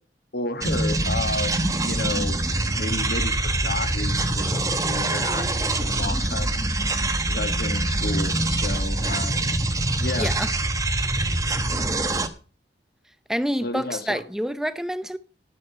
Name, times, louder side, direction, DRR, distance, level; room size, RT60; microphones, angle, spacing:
voice 1, 0.3-2.4 2.7-6.7 7.3-9.4 10.0-10.3 13.6-14.2, left 2 dB, 55° left, 1.7 m, -32 dB
sound 1, 0.6-12.3, right 2 dB, 20° right, 0.9 m, -24 dB
voice 2, 10.2-10.5 13.3-15.2, equal, 5° right, 0.6 m, -27 dB
11.0 x 8.4 x 5.6 m
head